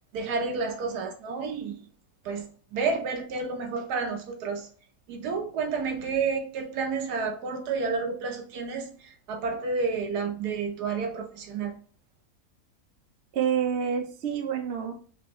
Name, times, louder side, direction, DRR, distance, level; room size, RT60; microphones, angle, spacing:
voice 1, 0.1-1.8 2.2-4.7 5.1-11.7, right 4 dB, 80° right, 1.3 m, -30 dB
voice 2, 13.3-14.9, right 8 dB, 50° right, 0.9 m, -28 dB
6.4 x 2.7 x 3.1 m
omnidirectional pair, 1.7 m